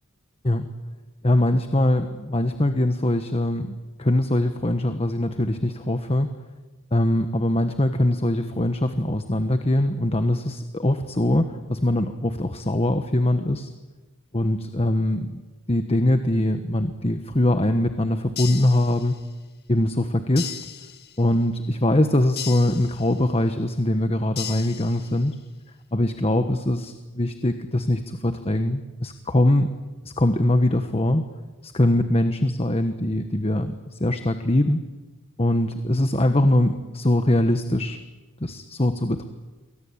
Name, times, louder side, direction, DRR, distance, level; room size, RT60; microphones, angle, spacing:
voice 1, 1.2-6.3 6.9-13.7 14.3-15.4 15.7-19.2 19.7-20.6 21.2-25.4 25.9-29.7 30.0-31.2 31.6-34.8 35.4-38.0 38.4-39.2, left 1 dB, 30° left, 8 dB, 1.3 m, -22 dB
sound 1, 18.4-19.4 20.4-21.4 22.4-23.4 24.4-25.4, left 10 dB, 50° left, 2.0 m, -37 dB
28.0 x 23.5 x 8.8 m, 1.2 s
head